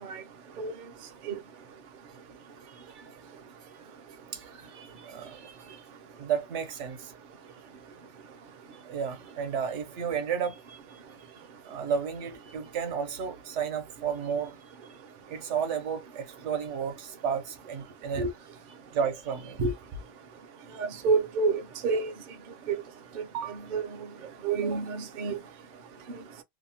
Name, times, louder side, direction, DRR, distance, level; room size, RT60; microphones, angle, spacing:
voice 1, 2.6-3.0 4.3-5.8 6.2-7.1 8.9-11.0 11.6-14.5 15.3-18.3 18.9-19.6 23.3-23.6 24.6-24.8, right 7 dB, 75° right, 1.0 m, -33 dB
voice 2, 20.8-22.1 22.7-22.8 23.7-23.9 24.4-25.4, right 4 dB, 55° right, 0.5 m, -28 dB
2.7 x 2.0 x 2.6 m
omnidirectional pair, 1.2 m